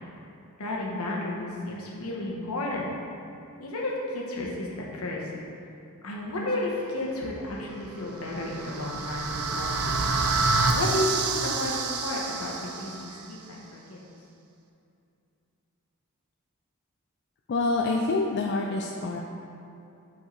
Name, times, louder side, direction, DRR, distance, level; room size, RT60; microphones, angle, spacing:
voice 1, 0.6-2.9 3.6-5.2 6.0-10.3 10.7-14.0, left 1 dB, 75° left, -3 dB, 1.2 m, -32 dB
sound 1, 8.1-13.2, right 3 dB, 85° right, 0.6 m, -28 dB
voice 2, 17.5-19.2, left 3 dB, 50° left, 0 dB, 0.4 m, -26 dB
8.3 x 4.6 x 3.2 m, 2.6 s
head